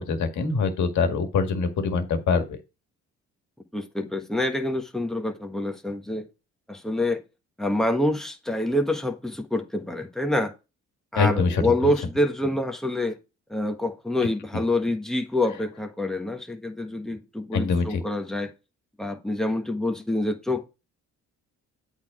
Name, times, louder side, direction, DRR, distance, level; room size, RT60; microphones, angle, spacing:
voice 1, 0.0-2.6 11.2-11.9 17.5-18.0, left 5 dB, 70° left, 1.9 m, -24 dB
voice 2, 3.7-6.3 6.7-7.2 7.6-10.5 11.1-13.2 13.5-18.5 19.0-20.7, left 1 dB, ahead, 1.4 m, -26 dB
8.5 x 4.0 x 5.0 m
cardioid pair, 90°, 30 cm